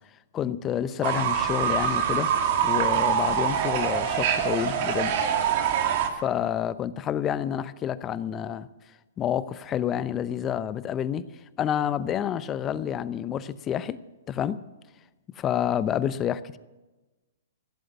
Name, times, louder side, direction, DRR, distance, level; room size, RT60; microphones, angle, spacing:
voice 1, 0.3-2.3 2.6-5.1 6.1-8.7 9.2-11.3 11.6-14.0 14.3-14.6 15.4-16.6, left 9 dB, 25° left, 16 dB, 0.7 m, -28 dB
Fowl / Bird, 1.0-6.1, right 8 dB, 50° right, 1.9 m, -24 dB
15.5 x 7.8 x 9.6 m, 1.1 s
hypercardioid pair, 130°, 0 cm